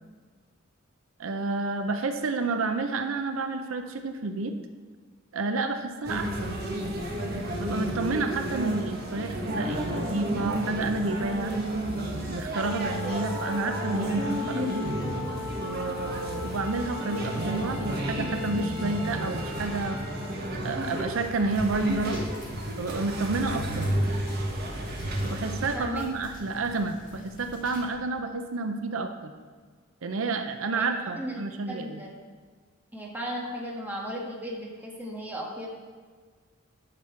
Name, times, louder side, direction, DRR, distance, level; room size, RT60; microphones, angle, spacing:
voice 1, 1.2-4.5 5.3-6.6 7.6-11.5 12.3-14.9 15.6-20.0 20.6-22.2 22.8-23.9 25.2-29.3 30.0-32.0, right 3 dB, 80° right, 7 dB, 0.6 m, -30 dB
sound 1, 6.0-25.8, right 1 dB, 50° right, 1.4 m, -32 dB
Wind instrument woodwind instrument, 12.6-20.6, left 6 dB, 65° left, 0.4 m, -39 dB
sound 2, 21.5-27.9, equal, 40° left, 2.1 m, -46 dB
voice 2, 30.7-31.4 31.7-32.1 32.9-35.7, equal, 10° right, -2 dB, 1.5 m, -36 dB
11.0 x 6.0 x 4.4 m, 1.5 s
head